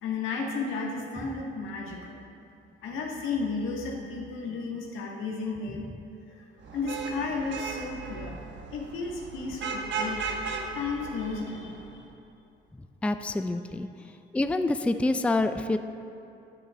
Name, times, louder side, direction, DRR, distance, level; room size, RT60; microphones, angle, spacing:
voice 1, 0.0-2.2 2.8-5.9 6.3-6.5 6.7-8.4 8.7-10.4 10.7-12.0, left 4 dB, 90° left, -1 dB, 1.5 m, -33 dB
Vehicle horn car horn honking / Traffic noise roadway noise, 6.6-11.9, right 4 dB, 70° right, 1.1 m, -36 dB
voice 2, 13.0-13.9 14.3-15.8, left 2 dB, 5° left, 9 dB, 0.4 m, -26 dB
10.0 x 5.6 x 6.7 m, 2.6 s
cardioid pair, 90°, 20 cm